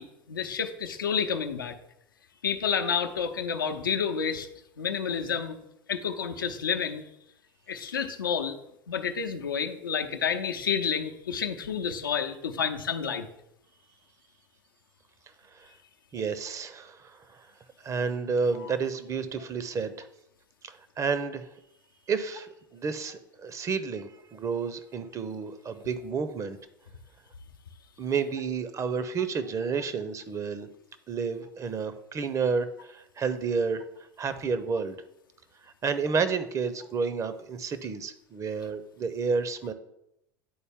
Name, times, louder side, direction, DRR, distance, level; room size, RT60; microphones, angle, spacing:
voice 1, 0.0-1.8 2.4-4.5 4.8-5.6 5.9-7.0 7.7-8.6 8.9-13.3 18.6-18.7, left 7 dB, 80° left, 6 dB, 0.6 m, -30 dB
voice 2, 16.1-17.4 17.8-20.1 20.7-21.5 22.1-26.6 28.0-30.7 31.1-33.8 34.2-35.0 35.8-39.7, right 5 dB, 30° right, 12 dB, 0.7 m, -30 dB
10.0 x 4.1 x 3.6 m, 0.82 s
figure-of-eight pair, 80°, 11 cm